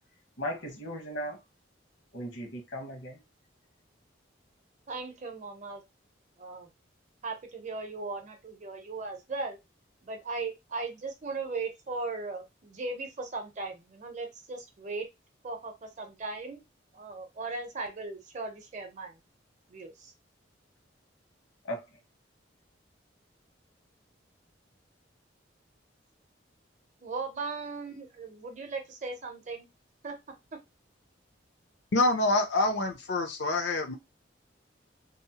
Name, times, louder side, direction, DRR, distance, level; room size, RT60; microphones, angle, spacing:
voice 1, 0.4-1.4 2.1-3.2 21.7-21.8, equal, 80° left, 1.1 m, -36 dB
voice 2, 4.9-5.8 6.4-6.7 7.2-9.6 10.0-15.1 15.4-16.6 16.9-19.2 19.7-20.1 27.0-29.7 30.0-30.2, right 3 dB, 40° right, 0.6 m, -37 dB
voice 3, 31.9-34.0, left 2 dB, 60° left, 0.5 m, -26 dB
2.7 x 2.0 x 2.8 m
head